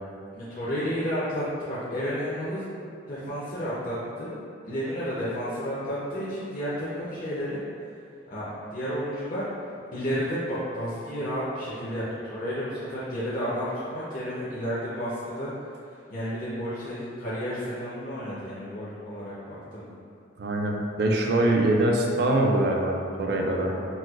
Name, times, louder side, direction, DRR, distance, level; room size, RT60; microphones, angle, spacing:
voice 1, 0.3-2.6 3.1-4.3 4.6-7.6 8.3-9.5 9.9-15.5 16.1-20.0 23.7-23.9, equal, 45° left, -10 dB, 0.5 m, -31 dB
voice 2, 20.4-23.7, right 1 dB, 60° right, 1 dB, 0.4 m, -23 dB
4.1 x 2.2 x 2.3 m, 2.4 s
head